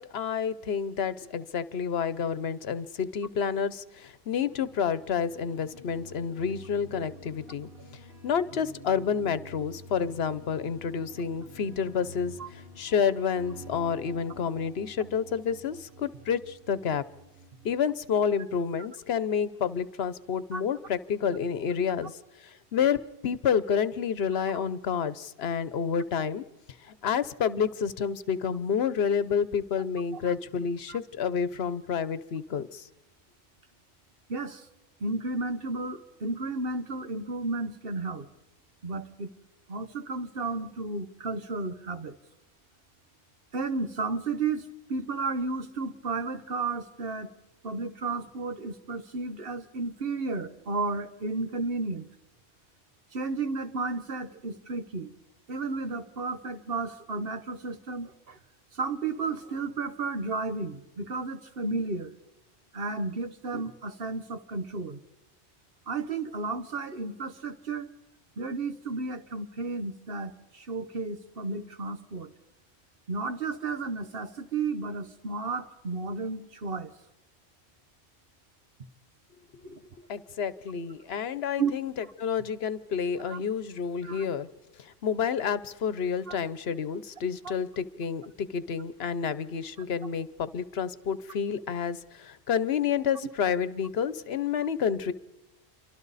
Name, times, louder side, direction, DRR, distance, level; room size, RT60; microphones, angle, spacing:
voice 1, 0.0-7.7 8.2-12.3 12.8-17.0 17.6-26.4 26.8-32.9 80.1-81.9 82.2-84.5 84.8-95.1, left 7 dB, 70° left, 15 dB, 1.1 m, -29 dB
sound 1, 4.3-17.7, equal, 80° right, 6.5 m, -49 dB
voice 2, 34.3-34.7 35.0-38.3 38.8-39.3 39.7-42.2 43.5-47.3 47.6-52.1 53.1-55.1 55.5-58.4 58.7-62.1 62.7-65.0 65.9-67.9 68.4-72.3 73.1-76.9 79.6-79.8 81.6-81.7 83.2-83.4 84.0-84.3 86.3-86.4 87.4-87.5, right 3 dB, 60° right, 9 dB, 1.3 m, -33 dB
28.0 x 23.5 x 4.1 m, 1.0 s
omnidirectional pair, 1.1 m